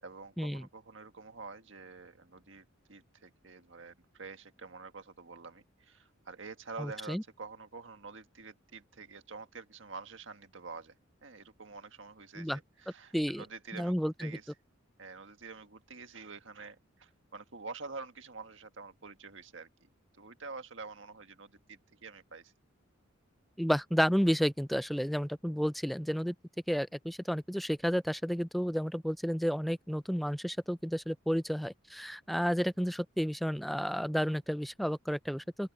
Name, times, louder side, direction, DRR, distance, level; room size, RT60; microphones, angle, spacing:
voice 1, 0.0-10.9 11.2-14.5 15.0-19.7 20.2-22.5, right 4 dB, 65° right, 1.7 m, -47 dB
voice 2, 6.8-7.2 12.4-12.6 13.1-13.5 13.7-14.4 23.6-26.3 26.7-35.7, equal, ahead, 0.5 m, -31 dB
open air
head